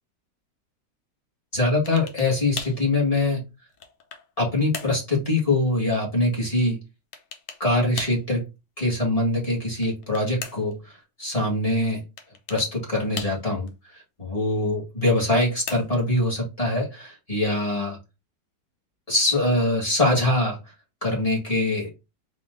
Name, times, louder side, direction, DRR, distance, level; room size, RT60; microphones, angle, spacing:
voice 1, 1.5-3.4 4.4-6.8 7.6-8.4 8.8-12.0 12.5-18.0 19.1-20.6 21.0-21.9, left 2 dB, 20° left, -2 dB, 1.9 m, -23 dB
sound 1, 1.9-2.3 2.6-2.8 3.5-4.3 4.7-5.0 7.1-7.6 8.0-8.3 9.7-10.8 12.2-12.7 13.2-13.7 15.1-16.1, left 6 dB, 85° left, 1.4 m, -37 dB
4.4 x 3.0 x 3.8 m, 0.26 s
omnidirectional pair, 1.8 m